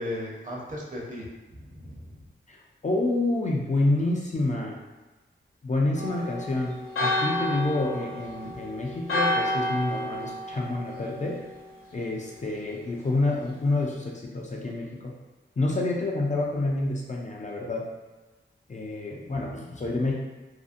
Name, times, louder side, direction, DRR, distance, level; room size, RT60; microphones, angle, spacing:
voice 1, 0.0-2.2, left 1 dB, 40° right, -3 dB, 0.7 m, -36 dB
voice 2, 2.8-4.8 5.6-11.4 11.9-15.1 15.6-17.8 18.7-20.1, left 2 dB, 35° left, -2 dB, 0.4 m, -28 dB
Church bell, 6.0-11.7, left 1 dB, 80° left, 0.6 m, -30 dB
2.5 x 2.0 x 2.5 m, 1.2 s
wide cardioid pair, 70°, 21 cm